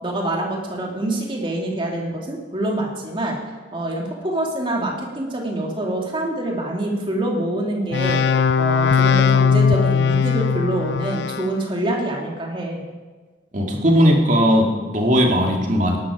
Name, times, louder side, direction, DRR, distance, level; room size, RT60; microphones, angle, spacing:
voice 1, 0.0-3.4 3.7-8.2 8.6-12.9, right 1 dB, 30° right, -1 dB, 2.6 m, -25 dB
sound 1, 7.9-11.5, left 6 dB, 65° left, 0.5 m, -18 dB
voice 2, 13.5-16.0, equal, 45° right, 0 dB, 2.3 m, -17 dB
18.5 x 11.5 x 5.0 m, 1.3 s
head